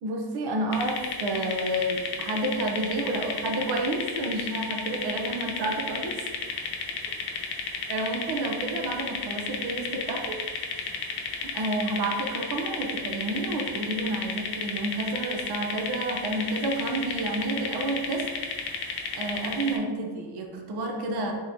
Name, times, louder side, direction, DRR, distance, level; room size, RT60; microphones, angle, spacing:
voice 1, 0.0-6.3 7.9-10.4 11.4-18.3 19.1-21.3, right 2 dB, 70° right, 2 dB, 0.8 m, -30 dB
sound 1, 0.7-19.8, left 5 dB, 70° left, 0.7 m, -33 dB
3.7 x 3.0 x 4.1 m, 1.5 s
cardioid pair, 130°, 41 cm